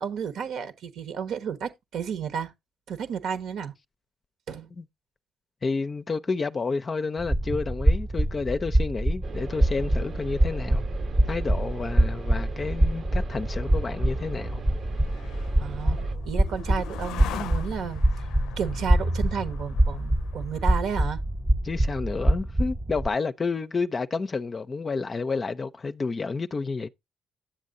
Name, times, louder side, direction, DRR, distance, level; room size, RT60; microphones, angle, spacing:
voice 1, 0.0-2.5 2.9-3.7 4.5-4.7 15.6-18.3 18.6-21.2, right 7 dB, 75° right, 1.2 m, -32 dB
voice 2, 5.6-10.8 11.3-14.6 21.6-26.9, left 4 dB, 35° left, 0.5 m, -30 dB
sound 1, 7.2-23.1, right 1 dB, 20° right, 0.7 m, -25 dB
sound 2, 9.2-16.2, right 4 dB, 50° right, 0.8 m, -38 dB
sound 3, 13.8-21.2, left 10 dB, 90° left, 0.5 m, -42 dB
10.0 x 7.5 x 2.6 m
cardioid pair, 90°, 0 cm